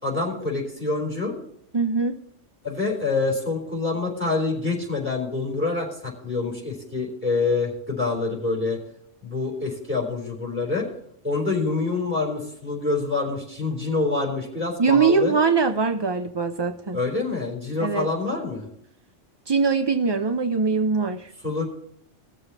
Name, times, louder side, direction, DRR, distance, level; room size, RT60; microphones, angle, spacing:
voice 1, 0.0-1.3 2.6-8.8 9.2-10.9 11.2-15.4 16.9-18.7 21.4-21.7, left 3 dB, 10° right, -1 dB, 3.8 m, -26 dB
voice 2, 1.7-2.1 14.8-17.0 17.8-18.1 19.5-21.3, right 5 dB, 45° right, 7 dB, 0.3 m, -22 dB
19.5 x 7.0 x 4.1 m, 0.71 s
omnidirectional pair, 1.2 m